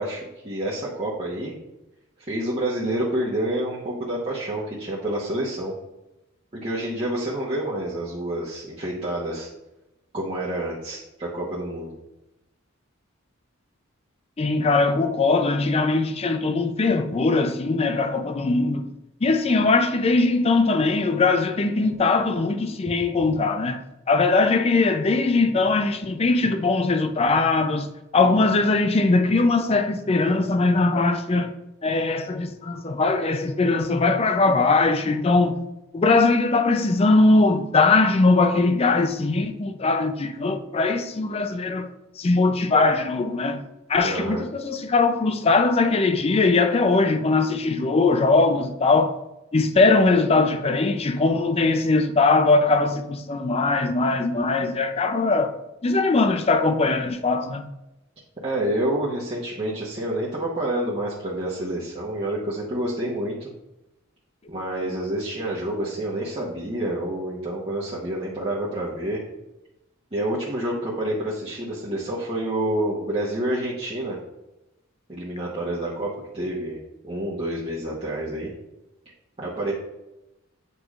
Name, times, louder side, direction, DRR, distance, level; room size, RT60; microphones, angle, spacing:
voice 1, 0.0-1.6 2.3-5.7 6.5-9.5 10.1-11.9 44.0-44.4 58.4-63.5 64.5-69.2 70.1-74.2 75.1-76.8 77.0-78.5 79.4-79.7, right 1 dB, 30° right, 1.0 m, -28 dB
voice 2, 14.4-18.9 19.2-27.9 28.1-31.5 31.8-35.6 35.9-41.9 42.2-43.6 43.9-49.2 49.5-55.6 55.8-57.7, left 3 dB, 30° left, 0.4 m, -21 dB
8.2 x 4.8 x 2.4 m
head